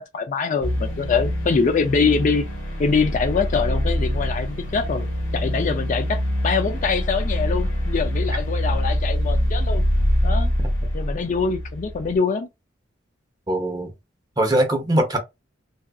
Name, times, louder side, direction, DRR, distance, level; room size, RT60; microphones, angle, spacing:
voice 1, 0.0-2.4 2.8-5.1 5.3-9.9 10.2-10.5 10.9-12.5, left 5 dB, 40° left, 0.3 m, -24 dB
sound 1, 0.6-12.2, equal, 90° left, 1.2 m, -24 dB
voice 2, 13.5-13.9 14.4-15.2, right 1 dB, 20° right, 0.7 m, -21 dB
2.6 x 2.4 x 2.3 m
head